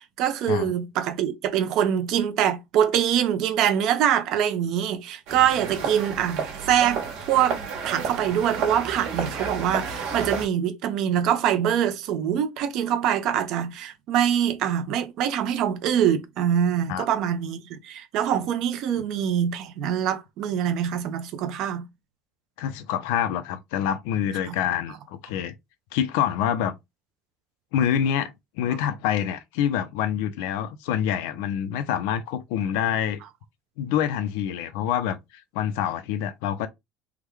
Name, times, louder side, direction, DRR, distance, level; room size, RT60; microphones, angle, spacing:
voice 1, 0.0-7.0 7.3-21.8 24.5-24.6, right 9 dB, 45° right, 0.6 m, -24 dB
sound 1, 5.3-10.5, right 5 dB, 65° right, 1.4 m, -31 dB
voice 2, 22.6-25.5 25.9-26.8 27.7-33.2 33.8-35.2 35.5-36.7, left 9 dB, 80° left, 0.5 m, -26 dB
3.6 x 2.2 x 3.1 m
cardioid pair, 175°, 0 cm